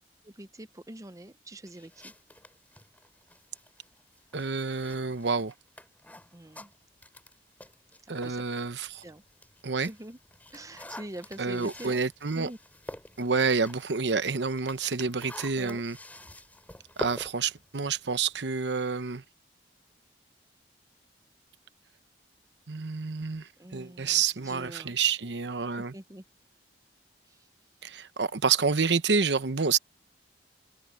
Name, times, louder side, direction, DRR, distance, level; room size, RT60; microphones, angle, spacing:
voice 1, 0.2-2.1 6.3-6.7 8.0-8.4 9.0-9.2 9.9-10.2 10.5-12.0 12.3-12.6 15.6-15.8 23.6-24.9 25.9-26.2, right 1 dB, 20° right, 0.8 m, -44 dB
sound 1, 1.7-8.4 8.9-18.6, left 1 dB, 10° left, 3.9 m, -47 dB
voice 2, 4.3-5.5 8.1-9.0 9.6-9.9 11.4-12.5 13.2-16.0 17.0-19.2 22.7-25.9 27.8-29.8, right 5 dB, 75° right, 0.9 m, -28 dB
head